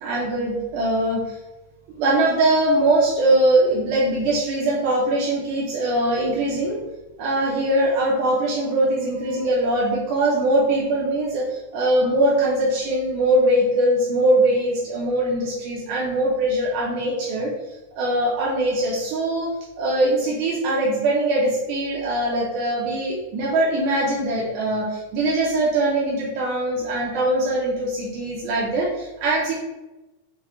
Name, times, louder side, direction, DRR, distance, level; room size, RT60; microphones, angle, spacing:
voice 1, 0.0-1.4 1.9-6.8 7.2-17.5 18.0-29.5, right 1 dB, 75° right, -4 dB, 2.1 m, -22 dB
6.2 x 2.2 x 3.7 m, 1.0 s
omnidirectional pair, 3.6 m